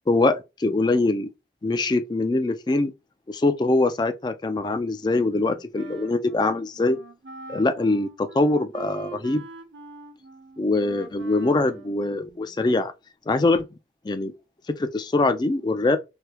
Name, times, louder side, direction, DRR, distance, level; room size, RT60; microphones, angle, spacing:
voice 1, 0.1-1.3 1.6-2.9 3.3-7.0 7.5-9.4 10.6-12.9 13.3-13.7 14.0-14.3 14.7-16.0, left 2 dB, 25° left, 0.3 m, -23 dB
Wind instrument woodwind instrument, 5.2-12.7, right 4 dB, 80° right, 0.8 m, -44 dB
3.3 x 2.3 x 2.9 m
head